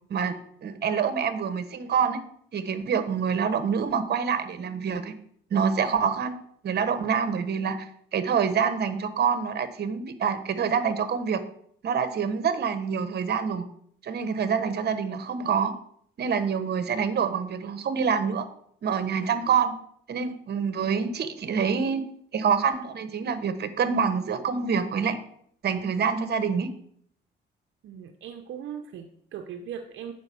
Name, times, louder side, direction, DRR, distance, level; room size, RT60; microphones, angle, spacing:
voice 1, 0.1-2.2 2.5-5.1 5.5-6.4 6.6-11.4 11.8-13.7 14.0-15.7 16.2-18.5 18.8-19.7 20.1-22.0 22.3-25.2 25.6-26.7, right 6 dB, 55° right, 11 dB, 1.2 m, -26 dB
voice 2, 27.8-30.1, right 8 dB, 75° right, 6 dB, 0.8 m, -39 dB
8.9 x 5.2 x 6.9 m, 0.65 s
cardioid pair, 90°, 20 cm